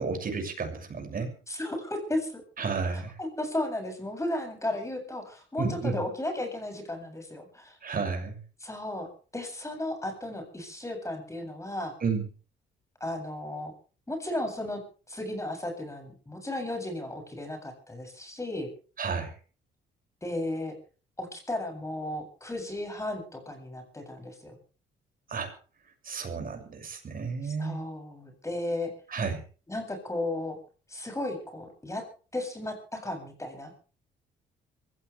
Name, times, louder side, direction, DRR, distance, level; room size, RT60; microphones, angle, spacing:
voice 1, 0.0-1.3 2.6-3.2 5.6-6.0 7.8-8.4 12.0-12.3 19.0-19.4 25.3-25.5 26.0-27.8 29.1-29.4, right 5 dB, 45° right, 5 dB, 6.9 m, -32 dB
voice 2, 1.5-2.4 2.9-7.8 8.6-11.9 13.0-13.7 14.1-14.8 15.1-18.7 20.2-20.7 21.2-24.5 27.4-28.9 29.7-30.6 30.9-32.0 32.3-33.7, left 1 dB, 15° left, 4 dB, 8.0 m, -34 dB
23.5 x 16.5 x 3.5 m, 0.38 s
cardioid pair, 90°, 20 cm